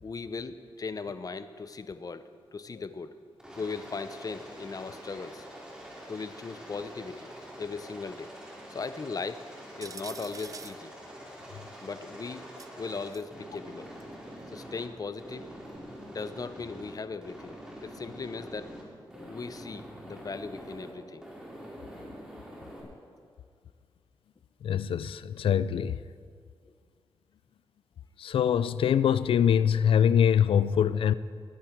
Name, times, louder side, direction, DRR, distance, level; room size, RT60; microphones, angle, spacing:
voice 1, 0.0-3.2 3.6-5.5 6.1-7.3 7.6-8.3 8.7-9.5 9.8-10.9 11.8-12.5 12.8-13.9 14.5-15.5 16.1-18.8 19.2-21.2, left 4 dB, 40° left, 0.8 m, -38 dB
Aircraft, 3.4-14.9 15.2-16.9 17.2-18.8 19.1-20.9 21.2-22.8, equal, 10° right, 4.1 m, -45 dB
sound 1, 9.8-10.8 12.6-13.3 14.0-14.1 15.7-15.8, right 5 dB, 40° right, 0.5 m, -45 dB
voice 2, 24.6-26.0 28.2-31.1, left 8 dB, 80° left, 0.4 m, -24 dB
20.0 x 11.0 x 4.6 m
cardioid pair, 70°, 9 cm